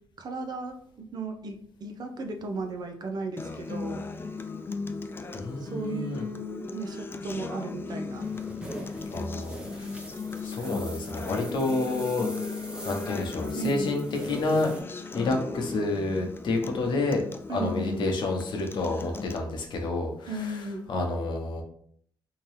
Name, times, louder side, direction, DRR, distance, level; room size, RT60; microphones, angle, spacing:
voice 1, 0.2-4.0 5.6-8.3 13.6-13.9 17.5-18.1 20.3-20.8, right 2 dB, 60° right, 4 dB, 0.7 m, -35 dB
Acoustic guitar, 3.4-19.4, left 4 dB, 30° left, 0.4 m, -37 dB
voice 2, 5.3-6.2 9.1-9.9 10.4-14.7 15.1-17.2 17.5-20.6 20.9-21.6, left 2 dB, 75° left, 2 dB, 0.8 m, -29 dB
sound 1, 8.2-14.8, right 1 dB, 10° right, 0.9 m, -42 dB
3.6 x 2.9 x 3.2 m, 0.63 s
cardioid pair, 90°, 8 cm